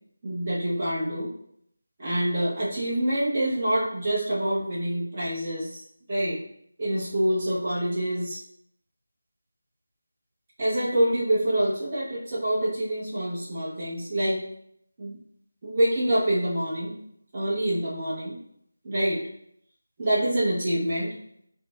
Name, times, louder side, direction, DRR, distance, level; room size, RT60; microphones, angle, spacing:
voice 1, 0.2-1.3 2.0-5.8 6.1-6.4 6.8-8.4 10.6-14.4 15.0-15.2 15.6-17.0 17.3-18.4 18.8-19.2 20.0-21.2, right 1 dB, 20° right, -8 dB, 0.8 m, -26 dB
5.5 x 2.1 x 2.4 m, 0.71 s
figure-of-eight pair, 180°, 0 cm